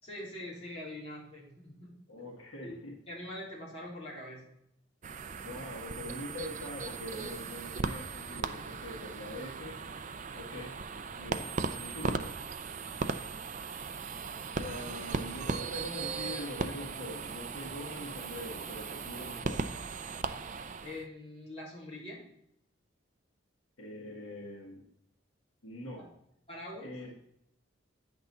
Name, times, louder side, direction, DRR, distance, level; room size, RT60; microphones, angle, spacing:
voice 1, 0.0-1.9 2.6-2.7 3.1-4.4 20.8-22.2 26.0-26.1 26.5-26.9, left 1 dB, 30° left, -6 dB, 3.2 m, -43 dB
voice 2, 2.1-2.9 5.4-9.8 10.3-10.8 11.2-12.4 14.5-19.7 23.8-24.9 25.6-26.1 26.8-27.1, left 1 dB, 90° left, 0 dB, 1.7 m, -43 dB
sound 1, 5.0-21.1, right 4 dB, 40° right, 0.5 m, -38 dB
9.1 x 6.1 x 4.1 m, 0.76 s
head